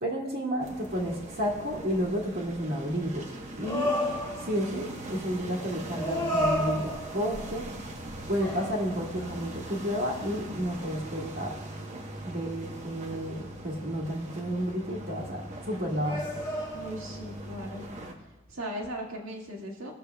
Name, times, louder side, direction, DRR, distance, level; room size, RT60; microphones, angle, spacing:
voice 1, 0.0-3.3 3.6-3.9 4.5-7.7 8.3-11.5 12.3-16.2, equal, 50° right, -4 dB, 1.8 m, -31 dB
sound 1, 0.6-18.1, right 1 dB, 35° right, 1.0 m, -41 dB
sound 2, 3.6-4.7 5.9-7.5 8.4-9.4 10.0-10.2 16.0-17.2, left 1 dB, 25° left, 1.7 m, -31 dB
voice 2, 16.7-17.9 18.5-19.9, equal, 80° right, -1 dB, 1.9 m, -38 dB
20.5 x 6.8 x 2.3 m, 1.0 s
head